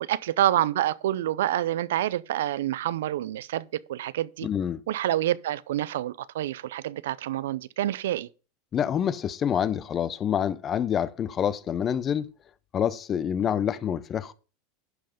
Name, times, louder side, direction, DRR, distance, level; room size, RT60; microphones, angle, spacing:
voice 1, 0.1-4.5 4.9-8.3, right 12 dB, 85° right, 0.5 m, -27 dB
voice 2, 4.4-4.8 8.7-12.3 12.7-14.3, left 9 dB, 25° left, 0.5 m, -27 dB
11.0 x 5.5 x 5.0 m
supercardioid pair, 150°, 0 cm